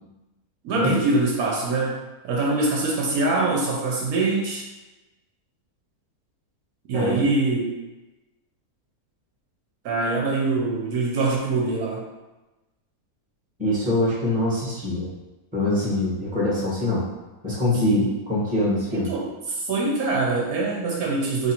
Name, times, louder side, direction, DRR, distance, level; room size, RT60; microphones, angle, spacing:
voice 1, 0.6-4.7 6.9-7.7 9.8-12.0 17.8-18.0 18.9-21.5, right 3 dB, 70° right, -2 dB, 1.1 m, -24 dB
voice 2, 13.6-15.1 15.5-17.0 17.4-19.1, left 1 dB, 5° right, -6 dB, 0.8 m, -23 dB
3.0 x 2.5 x 4.2 m, 1.1 s
omnidirectional pair, 1.7 m